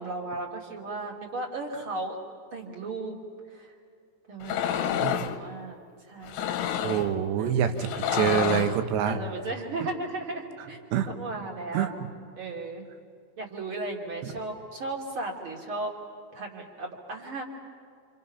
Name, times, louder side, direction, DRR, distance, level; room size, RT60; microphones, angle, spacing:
voice 1, 0.0-2.2 2.5-3.2 3.5-3.7 4.3-5.8 6.1-6.5 6.8-7.0 7.4-8.2 9.0-11.9 12.4-12.8 13.4-16.0 16.3-17.4, right 2 dB, 35° right, 0 dB, 2.6 m, -36 dB
sound 1, 4.4-5.4 6.2-7.1 7.8-8.8, left 9 dB, 70° left, 2.8 m, -29 dB
voice 2, 6.8-9.2 10.9-11.1 11.7-11.9, right 9 dB, 70° right, 7 dB, 3.3 m, -26 dB
29.0 x 28.0 x 5.7 m, 2.4 s
omnidirectional pair, 5.5 m